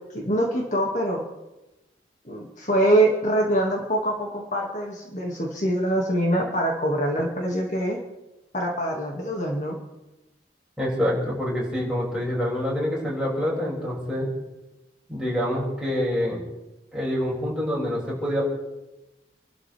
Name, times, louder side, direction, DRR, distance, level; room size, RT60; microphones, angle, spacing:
voice 1, 0.1-1.2 2.2-8.0 8.5-9.8, right 1 dB, 45° left, -1 dB, 2.2 m, -24 dB
voice 2, 10.8-14.3 15.1-16.4 16.9-18.4, equal, 5° right, -6 dB, 6.2 m, -26 dB
29.5 x 12.5 x 3.5 m, 1.0 s
head